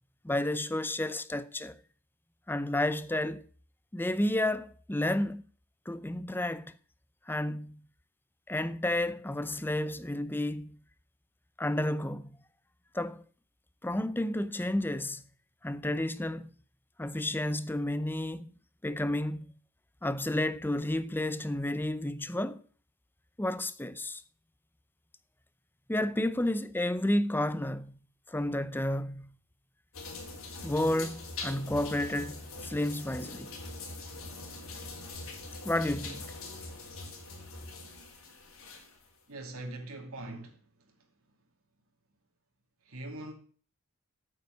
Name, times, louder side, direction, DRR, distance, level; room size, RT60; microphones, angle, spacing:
voice 1, 0.2-1.8 2.5-3.4 3.9-5.4 5.9-6.7 7.3-7.8 8.5-10.8 11.6-12.3 12.9-13.2 13.8-15.2 15.6-16.5 17.0-18.5 18.8-19.5 20.0-22.6 23.4-24.2 25.9-28.0 28.3-29.3 30.6-33.5 35.6-36.3, left 1 dB, 10° left, 0.6 m, -31 dB
sound 1, 29.9-39.1, left 2 dB, 65° left, 3.5 m, -43 dB
voice 2, 39.3-41.1 42.8-43.3, right 1 dB, 70° right, 2.4 m, -42 dB
8.6 x 8.4 x 8.0 m
head